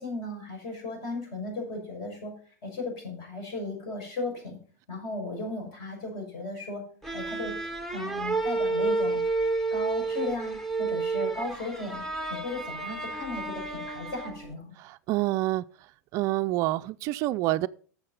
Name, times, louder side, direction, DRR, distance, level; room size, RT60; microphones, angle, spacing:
voice 1, 0.0-2.3 2.6-4.6 4.9-6.8 7.1-9.2 9.7-14.8, left 2 dB, 45° left, 5.9 m, -36 dB
sound 1, 7.0-14.5, right 3 dB, 5° left, 1.0 m, -30 dB
voice 2, 14.8-15.6 16.1-17.7, right 17 dB, 35° right, 0.4 m, -27 dB
10.0 x 7.3 x 5.3 m
supercardioid pair, 150°, 9 cm